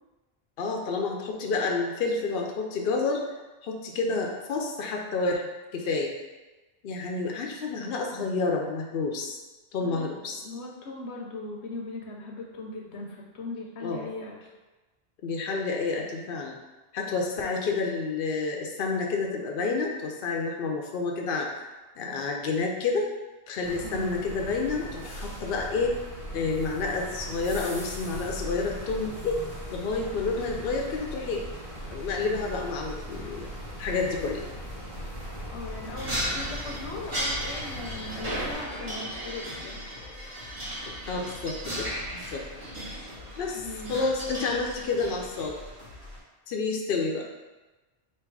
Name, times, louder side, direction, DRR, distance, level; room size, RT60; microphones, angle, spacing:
voice 1, 0.6-3.2 3.6-5.4 5.7-6.1 6.8-9.4 9.7-10.4 13.8-14.1 15.2-16.6 16.9-21.5 22.0-23.1 23.5-26.0 26.3-29.4 29.7-31.4 31.9-33.5 33.8-34.4 41.1-42.4 43.4-43.6 43.9-45.6 46.5-47.2, left 4 dB, 65° left, 0 dB, 0.8 m, -29 dB
voice 2, 10.4-14.5 23.8-24.1 35.5-39.8 43.5-44.1, left 2 dB, 85° left, -1 dB, 1.0 m, -39 dB
sound 1, 23.6-38.5, equal, 20° left, 0.7 m, -39 dB
sound 2, 27.0-46.2, left 1 dB, 70° right, 1.4 m, -46 dB
sound 3, 36.0-45.7, right 1 dB, 35° right, 1.1 m, -36 dB
3.5 x 2.9 x 4.6 m, 1.2 s
omnidirectional pair, 1.1 m